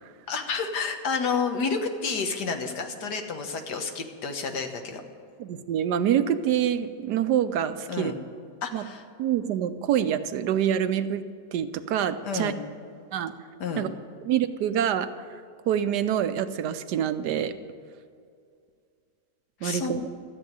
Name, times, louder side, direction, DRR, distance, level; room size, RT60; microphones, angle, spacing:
voice 1, 0.3-5.0 7.9-8.2 8.6-9.0 12.2-12.6 13.6-13.9 19.6-20.0, left 5 dB, 70° left, 5 dB, 1.7 m, -30 dB
voice 2, 5.4-8.1 8.7-8.8 9.2-11.2 11.5-12.5 13.1-13.3 13.8-13.9 14.2-15.1 15.7-17.5 19.6-20.0, right 9 dB, 75° right, 11 dB, 1.2 m, -26 dB
13.5 x 8.0 x 9.2 m, 2.2 s
omnidirectional pair, 1.9 m